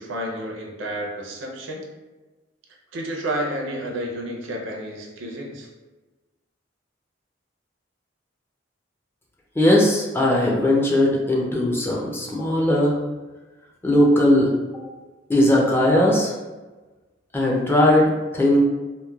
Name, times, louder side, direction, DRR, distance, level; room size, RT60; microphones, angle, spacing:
voice 1, 0.0-1.8 2.9-5.7, right 1 dB, 90° right, 0 dB, 0.5 m, -30 dB
voice 2, 9.6-13.0 13.8-14.8 15.3-16.3 17.3-18.6, left 1 dB, 10° left, -3 dB, 0.4 m, -19 dB
2.9 x 2.1 x 2.2 m, 1.2 s
head